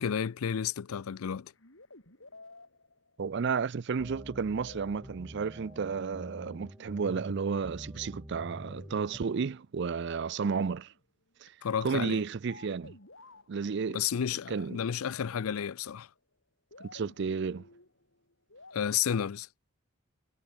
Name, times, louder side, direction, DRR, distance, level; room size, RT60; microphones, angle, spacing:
voice 1, 0.0-1.5 11.6-12.2 13.9-16.1 18.7-19.5, left 8 dB, 85° left, 0.5 m, -31 dB
sound 1, 1.5-3.5 4.7-5.9 6.4-7.3 7.8-11.0 12.5-16.2 16.7-19.2, left 2 dB, 65° left, 6.7 m, -55 dB
voice 2, 3.2-10.9 11.4-11.5 11.8-12.9 13.5-14.0 14.5-14.8 16.8-17.6, right 5 dB, 55° right, 0.4 m, -32 dB
sound 2, 4.0-9.2, equal, 10° right, 1.3 m, -46 dB
head